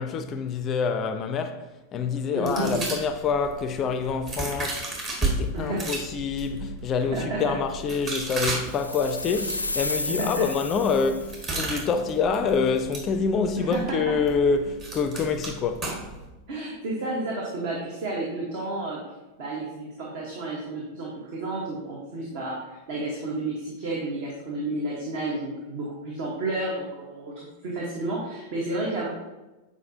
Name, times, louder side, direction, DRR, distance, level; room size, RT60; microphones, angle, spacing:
voice 1, 0.0-1.6 1.9-15.9, left 5 dB, 30° left, 0.4 m, -26 dB
voice 2, 2.3-2.8 5.5-5.9 7.1-7.4 10.1-10.5 13.6-14.1 16.5-19.0 19.4-29.1, right 2 dB, 50° right, 1.2 m, -31 dB
sound 1, 2.5-5.3 5.7-16.3, right 3 dB, 30° right, 1.6 m, -35 dB
sound 2, 8.6-11.6, left 2 dB, 85° left, 0.4 m, -32 dB
7.7 x 4.8 x 2.7 m
figure-of-eight pair, 90°, 0 cm